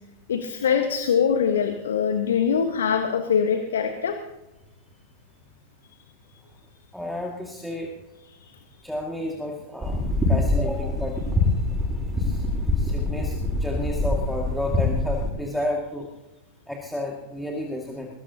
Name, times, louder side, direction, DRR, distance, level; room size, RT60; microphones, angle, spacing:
voice 1, 0.3-4.2 8.4-8.5, left 7 dB, 65° left, 6 dB, 1.4 m, -23 dB
voice 2, 6.9-7.9 8.8-10.0 10.3-11.3 12.2-12.4 12.8-16.1 16.7-18.1, left 1 dB, ahead, -1 dB, 2.2 m, -31 dB
sound 1, 9.8-15.3, left 2 dB, 15° right, 7.2 m, -24 dB
22.5 x 22.0 x 2.9 m, 0.97 s
figure-of-eight pair, 90°, 0 cm